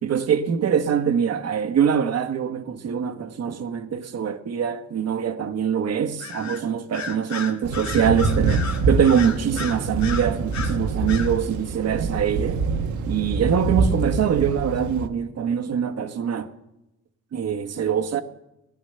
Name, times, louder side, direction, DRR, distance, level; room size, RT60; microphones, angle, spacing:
voice 1, 0.0-12.6 13.1-16.5 17.3-18.2, right 8 dB, 55° right, 1.3 m, -23 dB
Bird vocalization bird call bird song, 6.2-6.6 6.9-10.8 11.1-11.3, left 5 dB, 65° left, 2.2 m, -33 dB
Thunder / Rain, 7.6-15.1, right 3 dB, 75° right, 1.3 m, -25 dB
18.0 x 11.0 x 6.8 m
cardioid pair, 90°, 30 cm